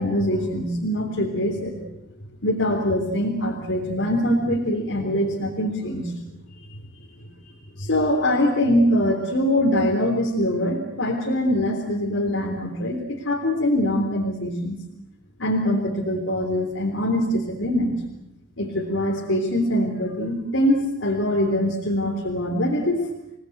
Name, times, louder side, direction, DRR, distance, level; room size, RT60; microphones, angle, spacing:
voice 1, 0.0-1.9 2.4-6.1 6.7-6.8 7.8-14.8 15.4-18.0 18.6-23.1, left 1 dB, 65° left, -1 dB, 3.6 m, -23 dB
28.0 x 19.0 x 8.1 m, 0.85 s
head